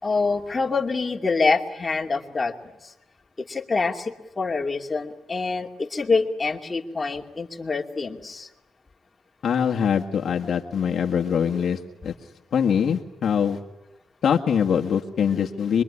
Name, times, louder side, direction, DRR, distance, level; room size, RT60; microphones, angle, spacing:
voice 1, 0.0-2.5 2.8-2.9 3.4-8.5, left 4 dB, 25° left, 1 dB, 2.6 m, -26 dB
voice 2, 9.4-12.1 12.5-13.6 14.2-15.8, left 7 dB, 60° left, 2 dB, 1.7 m, -23 dB
26.0 x 23.0 x 9.9 m, 0.94 s
cardioid pair, 85°, 0 cm